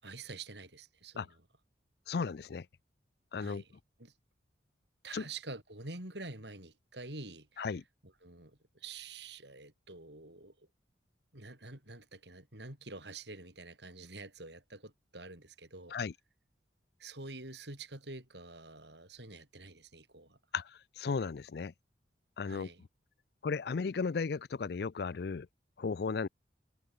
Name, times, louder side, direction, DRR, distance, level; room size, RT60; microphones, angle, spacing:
voice 1, 0.0-1.4 3.4-3.7 4.0-4.1 5.0-7.7 8.0-10.7 11.3-16.0 17.0-20.4 22.4-22.8, right 3 dB, 70° right, 6.9 m, -47 dB
voice 2, 2.1-2.7 3.3-3.6 5.1-5.2 7.6-7.8 15.9-16.1 20.5-21.7 22.4-22.7 23.4-25.5 25.8-26.3, left 5 dB, 60° left, 0.4 m, -35 dB
head